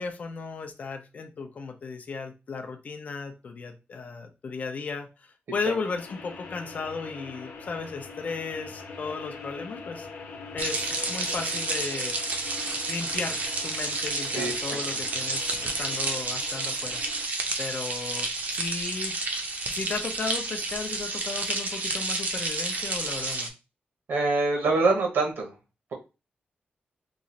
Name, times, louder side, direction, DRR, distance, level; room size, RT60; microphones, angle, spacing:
voice 1, 0.0-10.1 10.5-12.2 12.9-17.0 17.6-19.1 19.7-23.5, left 4 dB, 40° left, 0.5 m, -35 dB
sound 1, 5.8-17.2, left 4 dB, 90° left, 0.7 m, -43 dB
sound 2, 10.6-23.5, right 3 dB, 45° right, 0.6 m, -30 dB
voice 2, 24.1-25.5, right 3 dB, 70° right, 1.1 m, -24 dB
3.0 x 2.4 x 3.9 m
wide cardioid pair, 175°, 4 cm